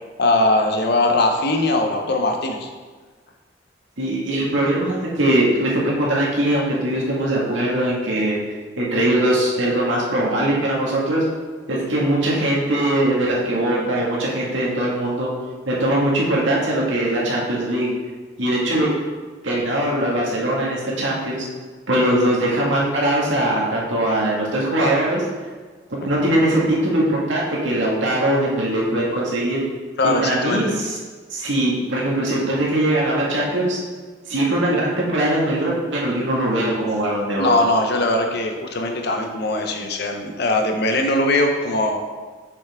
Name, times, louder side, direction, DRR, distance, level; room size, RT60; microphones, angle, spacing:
voice 1, 0.2-2.7 30.0-30.7 37.4-42.0, left 2 dB, 60° left, 3 dB, 0.8 m, -20 dB
voice 2, 4.0-8.4 8.8-11.2 11.7-15.3 15.7-17.9 18.4-18.9 19.4-21.5 21.9-25.3 25.9-29.6 30.2-31.0 31.3-33.8 34.3-37.6, right 1 dB, 85° right, -4 dB, 1.9 m, -21 dB
7.0 x 5.7 x 3.6 m, 1.4 s
head